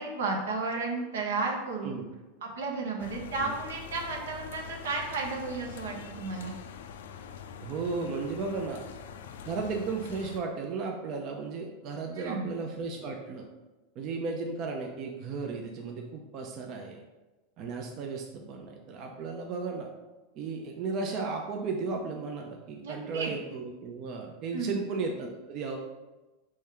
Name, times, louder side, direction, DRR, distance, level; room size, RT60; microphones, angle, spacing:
voice 1, 0.0-2.0 2.4-6.6 12.1-12.5 22.8-23.3 24.5-24.8, right 3 dB, 90° right, 0 dB, 1.1 m, -33 dB
sound 1, 3.0-10.4, left 7 dB, 85° left, 0.3 m, -44 dB
voice 2, 7.6-8.8 9.4-13.4 14.0-17.0 17.6-19.9 20.4-25.8, right 4 dB, 45° right, 1 dB, 0.6 m, -35 dB
4.3 x 3.1 x 3.8 m, 1.1 s
supercardioid pair, 120°, 0 cm